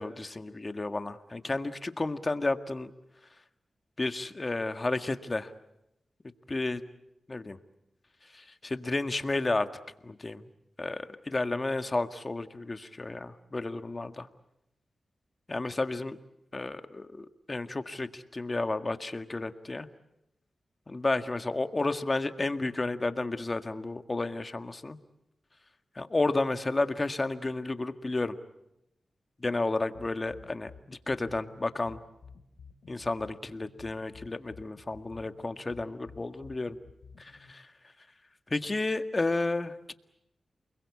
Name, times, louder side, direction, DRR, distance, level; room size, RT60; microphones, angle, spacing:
voice 1, 0.0-2.9 4.0-5.5 6.5-6.8 7.3-7.6 8.3-9.7 10.0-10.4 10.8-14.3 15.5-16.2 16.5-19.9 20.9-25.0 26.0-28.4 29.4-32.0 32.9-36.8 37.2-37.6 38.5-39.9, left 2 dB, 35° left, 9 dB, 1.7 m, -32 dB
sound 1, 29.9-37.5, left 5 dB, 85° left, 3.0 m, -52 dB
29.0 x 22.0 x 8.5 m, 0.86 s
cardioid pair, 50°, 0 cm